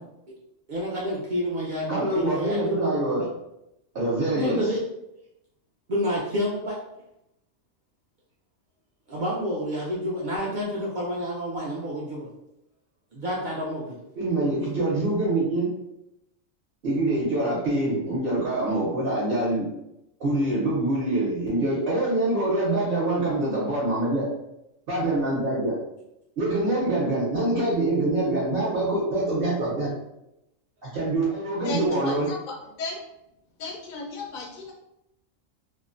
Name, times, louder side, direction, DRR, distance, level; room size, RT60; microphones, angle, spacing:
voice 1, 0.7-2.7 4.3-4.8 5.9-6.8 9.1-12.3 13.1-13.9, equal, 75° right, -5 dB, 0.4 m, -29 dB
voice 2, 1.9-3.3 3.9-4.7 14.2-15.7 16.8-19.7 20.2-24.3 24.9-25.8 26.4-29.9 30.9-32.3, right 2 dB, 55° right, -7 dB, 0.7 m, -25 dB
voice 3, 31.6-33.0 33.6-34.7, left 2 dB, 65° left, -1 dB, 0.4 m, -34 dB
2.5 x 2.0 x 2.4 m, 0.87 s
omnidirectional pair, 1.3 m